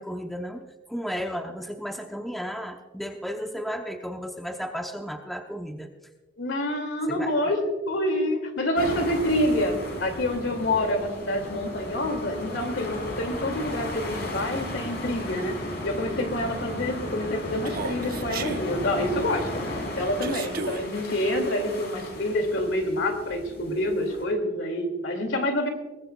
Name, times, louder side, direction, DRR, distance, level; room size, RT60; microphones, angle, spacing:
voice 1, 0.0-5.9 7.1-7.5, equal, ahead, 3 dB, 0.7 m, -34 dB
voice 2, 6.4-25.7, left 1 dB, 75° left, 5 dB, 2.4 m, -27 dB
sound 1, 8.8-24.2, left 1 dB, 55° left, 5.9 m, -35 dB
Human voice, 17.6-18.6 20.2-20.8, right 4 dB, 50° right, 0.9 m, -33 dB
22.0 x 19.0 x 2.3 m, 1.2 s
head